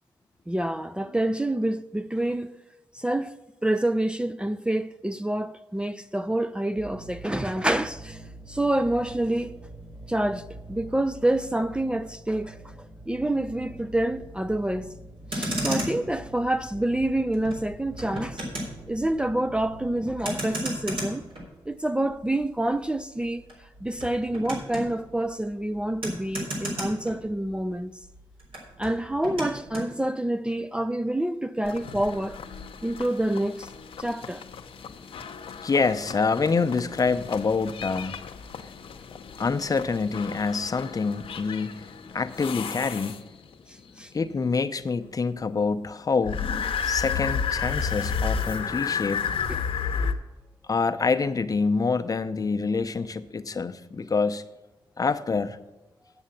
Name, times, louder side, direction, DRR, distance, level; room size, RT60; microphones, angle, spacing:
voice 1, 0.5-2.5 2.9-3.3 3.6-8.2 8.5-9.5 10.1-14.9 15.3-18.4 18.9-21.2 21.7-23.4 23.8-28.0 28.8-32.4 32.8-33.7 34.0-34.4 43.7-44.1 49.5-49.6, right 1 dB, 10° right, 0.4 m, -27 dB
sound 1, 6.7-20.3, right 2 dB, 45° right, 4.1 m, -45 dB
Motor vehicle (road), 15.1-27.7 28.0-29.9, equal, 70° right, 3.9 m, -35 dB
sound 2, 31.6-43.5 46.2-50.1, left 6 dB, 75° left, 0.8 m, -32 dB
voice 2, 35.5-38.2 38.5-38.8 39.1-43.3 44.1-46.5 46.8-49.3 50.7-54.4 55.0-55.6, left 4 dB, 40° left, 0.6 m, -26 dB
8.0 x 7.6 x 7.2 m
cardioid pair, 65°, 9 cm